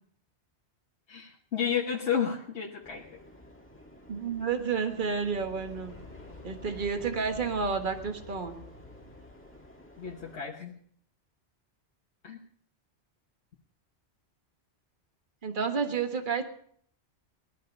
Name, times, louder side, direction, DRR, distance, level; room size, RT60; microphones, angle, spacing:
voice 1, 1.1-3.1 10.0-10.7 12.2-12.4, left 7 dB, 85° left, -1 dB, 1.6 m, -31 dB
sound 1, 2.8-10.4, left 1 dB, 10° left, 1.9 m, -52 dB
voice 2, 4.1-5.9 6.4-8.6 15.4-16.4, right 5 dB, 50° right, 6 dB, 1.6 m, -30 dB
sound 2, 4.9-10.1, left 3 dB, 40° left, 1.2 m, -50 dB
19.0 x 12.0 x 5.4 m, 0.63 s
omnidirectional pair, 1.1 m